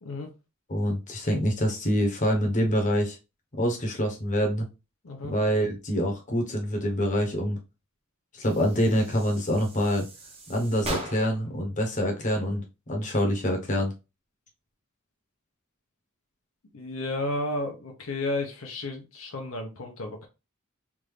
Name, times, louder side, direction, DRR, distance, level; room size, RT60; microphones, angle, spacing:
voice 1, 0.7-3.2 3.6-4.6 5.3-7.6 8.4-10.0 10.5-13.9, equal, 35° left, 2 dB, 1.0 m, -26 dB
Fuse and small Explosion, 8.4-11.5, right 1 dB, 30° right, 0.9 m, -39 dB
voice 2, 16.7-20.3, left 2 dB, 70° left, 3 dB, 0.8 m, -32 dB
3.6 x 2.6 x 3.2 m, 0.28 s
head